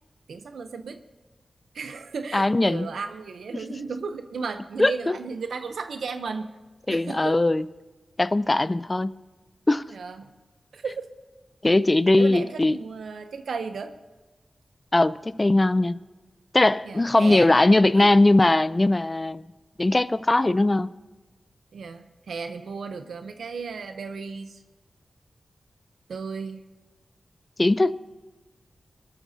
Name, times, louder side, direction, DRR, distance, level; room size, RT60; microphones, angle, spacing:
voice 1, 0.3-1.0 1.7-6.6 6.9-7.4 9.9-10.3 10.7-11.0 12.2-13.9 16.9-17.6 17.9-18.1 21.7-24.6 26.1-26.6, right 5 dB, 90° right, 8 dB, 0.7 m, -34 dB
voice 2, 2.3-2.9 4.8-5.2 6.9-7.7 8.2-9.1 9.7-9.9 11.6-12.8 14.9-16.0 16.5-19.4 19.8-20.9 27.6-28.0, left 2 dB, 30° left, 16 dB, 0.5 m, -20 dB
23.0 x 13.5 x 2.8 m, 1.2 s
cardioid pair, 55°, 0 cm